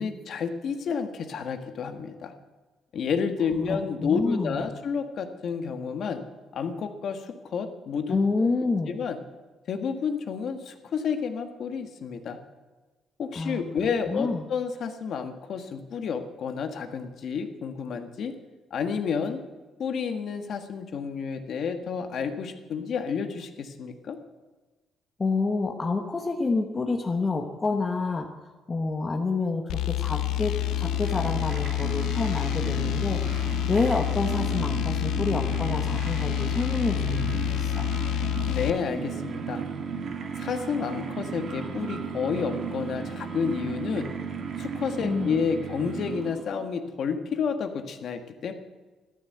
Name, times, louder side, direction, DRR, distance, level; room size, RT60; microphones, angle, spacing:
voice 1, 0.0-2.3 2.9-6.2 6.5-8.2 8.9-9.2 9.7-12.4 13.2-18.3 18.7-19.4 19.8-24.2 38.5-39.6 40.3-44.1 44.6-48.5, left 6 dB, 50° left, 7 dB, 1.6 m, -30 dB
voice 2, 3.6-4.7 8.1-8.9 13.3-13.6 14.1-14.5 25.2-37.9 45.0-45.4, left 3 dB, 20° left, 3 dB, 1.1 m, -28 dB
sound 1, 29.7-38.8, left 16 dB, 80° left, 0.6 m, -28 dB
sound 2, 30.0-46.7, right 6 dB, 40° right, 1.7 m, -35 dB
14.5 x 12.5 x 7.9 m, 1.2 s
cardioid pair, 165°, 0 cm